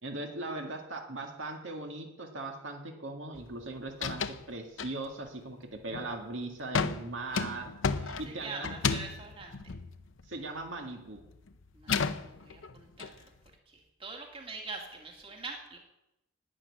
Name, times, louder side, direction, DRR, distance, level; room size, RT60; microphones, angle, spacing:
voice 1, 0.0-5.6 5.8-7.7 8.2-8.7 10.3-11.2, right 2 dB, 65° right, 2 dB, 2.0 m, -39 dB
sound 1, 3.3-3.6 3.9-4.5 4.8-5.3 5.7-6.2 6.7-10.8 11.1-13.1, left 5 dB, 65° left, 0.7 m, -33 dB
voice 2, 7.9-9.7 11.7-13.3 13.7-15.8, right 3 dB, 25° right, 1 dB, 2.4 m, -44 dB
11.5 x 9.3 x 9.8 m, 0.91 s
head